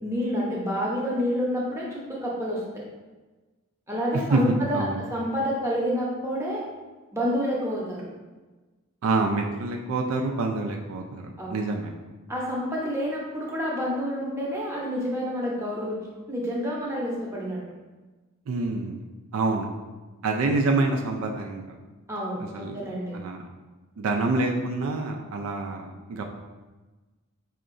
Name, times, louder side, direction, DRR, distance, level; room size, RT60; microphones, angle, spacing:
voice 1, 0.0-2.6 3.9-4.8 5.1-6.6 7.1-8.1 11.4-11.5 12.3-16.0 16.3-17.6 22.1-23.2, equal, 10° right, -5 dB, 0.7 m, -28 dB
voice 2, 4.3-5.1 9.0-11.9 18.5-19.0 19.3-19.7 20.2-21.6 22.4-22.8 23.1-23.4 24.0-26.2, right 3 dB, 65° right, 2 dB, 0.4 m, -26 dB
4.8 x 2.8 x 2.5 m, 1.2 s
head